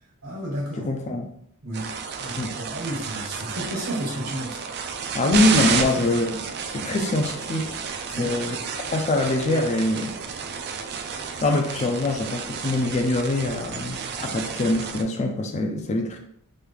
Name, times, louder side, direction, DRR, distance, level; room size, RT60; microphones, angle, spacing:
voice 1, 0.2-0.9 1.6-1.9 2.2-4.6 6.0-6.1 8.1-8.4, right 1 dB, 75° right, 1.4 m, -32 dB
voice 2, 0.8-1.3 2.4-2.6 5.1-6.4 6.7-7.8 8.2-8.6 8.9-10.2 11.4-16.2, left 2 dB, 30° left, 0.4 m, -24 dB
sound 1, 1.7-15.0, right 6 dB, 50° right, 0.3 m, -31 dB
3.4 x 3.1 x 2.3 m
head